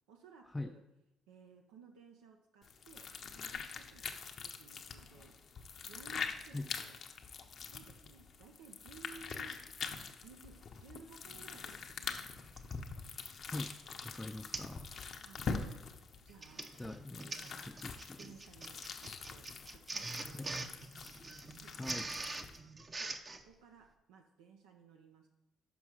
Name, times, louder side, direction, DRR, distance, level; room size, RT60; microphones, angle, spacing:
voice 1, 0.1-0.8 1.3-4.1 4.4-5.3 5.9-7.0 7.6-9.6 10.2-12.4 15.2-15.4 16.2-16.7 17.2-17.7 18.2-20.8 21.6-21.7 23.0-25.3, right 6 dB, 90° right, 2 dB, 0.5 m, -58 dB
sound 1, 2.6-22.6, left 5 dB, 55° left, 0.7 m, -45 dB
sound 2, 11.2-16.2, right 1 dB, 60° right, 2.1 m, -67 dB
Printer, 11.4-11.5 12.6-12.8 13.4-13.7 13.9-14.0 14.5-14.8 15.1-15.4 16.2-23.4, right 3 dB, 35° right, 0.6 m, -44 dB
voice 2, 13.5-14.9 16.8-18.3 20.2-20.6 21.7-22.1, left 2 dB, 15° left, 5 dB, 0.4 m, -44 dB
6.0 x 5.4 x 4.8 m, 0.89 s
supercardioid pair, 65°, 0 cm